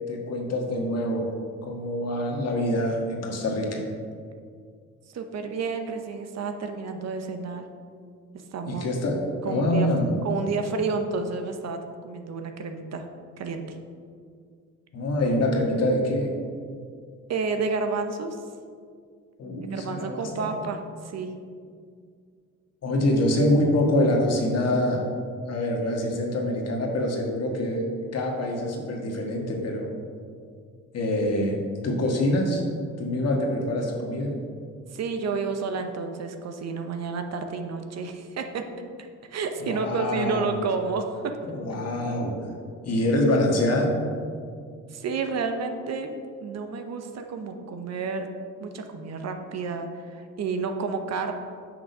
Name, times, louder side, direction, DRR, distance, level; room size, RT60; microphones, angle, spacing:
voice 1, 0.1-1.3 1.6-3.8 8.7-10.1 14.9-16.3 19.4-20.6 22.8-25.1 25.5-27.9 28.1-29.9 30.9-32.6 33.0-34.3 39.6-40.5 41.4-42.3 42.8-43.9, left 1 dB, 55° left, 1 dB, 1.6 m, -25 dB
voice 2, 5.1-7.7 8.3-8.9 9.4-9.9 10.2-13.0 13.4-13.6 17.3-18.4 19.7-21.3 34.9-38.7 39.0-41.3 44.9-46.1 46.4-48.3 48.6-51.3, right 4 dB, 60° right, 6 dB, 0.9 m, -30 dB
6.3 x 6.1 x 5.4 m, 2.1 s
cardioid pair, 90°, 30 cm